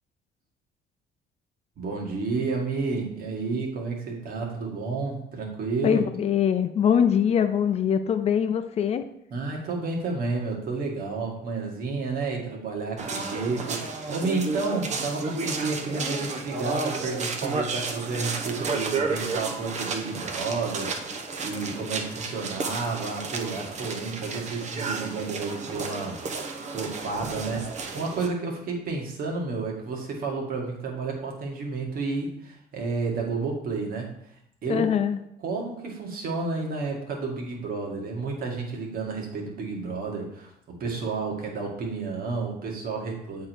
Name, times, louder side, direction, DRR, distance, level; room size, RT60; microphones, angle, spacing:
voice 1, 1.8-6.0 9.3-34.4 34.6-35.0 35.4-43.5, right 4 dB, 60° right, 0 dB, 1.9 m, -31 dB
voice 2, 5.8-9.0 34.7-35.2, left 8 dB, 40° left, 9 dB, 0.5 m, -23 dB
sound 1, 13.0-28.3, right 4 dB, 45° right, 0.9 m, -32 dB
7.8 x 3.7 x 4.6 m, 0.74 s
cardioid pair, 110°, 17 cm